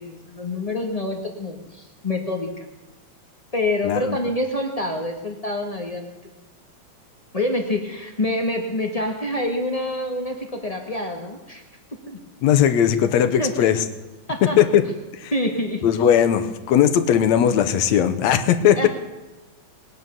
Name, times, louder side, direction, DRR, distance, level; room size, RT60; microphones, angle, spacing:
voice 1, 0.0-2.7 3.5-6.3 7.3-11.6 12.1-12.2 13.4-13.5 14.3-14.6 15.3-15.8 18.8-18.9, left 1 dB, 25° left, 3 dB, 0.7 m, -26 dB
voice 2, 3.8-4.2 12.4-13.8 14.4-14.9 15.8-18.9, left 9 dB, 70° left, 11 dB, 2.1 m, -18 dB
20.5 x 9.3 x 6.8 m, 1.1 s
omnidirectional pair, 3.4 m